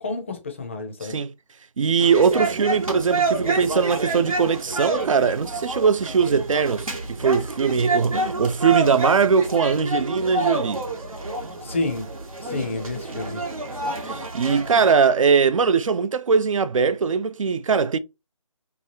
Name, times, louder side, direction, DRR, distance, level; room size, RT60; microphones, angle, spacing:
voice 1, 0.0-1.2 11.6-12.1 12.4-13.4, left 3 dB, 20° left, 0.4 m, -29 dB
voice 2, 1.0-1.3 1.8-10.8 14.0-18.0, right 6 dB, 70° right, 0.4 m, -21 dB
sound 1, 2.0-14.9, right 2 dB, 90° right, 1.0 m, -28 dB
3.0 x 2.3 x 2.8 m
figure-of-eight pair, 160°, 17 cm